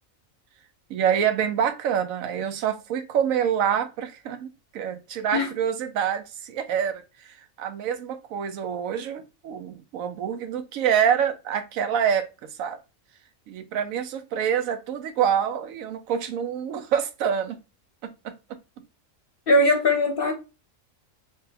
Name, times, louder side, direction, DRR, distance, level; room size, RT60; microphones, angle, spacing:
voice 1, 0.9-12.3 12.6-12.8 13.5-17.6 18.0-18.4, right 8 dB, 80° right, 1.0 m, -26 dB
voice 2, 19.5-20.3, left 1 dB, 45° left, 1.0 m, -20 dB
3.7 x 2.1 x 4.0 m
omnidirectional pair, 1.4 m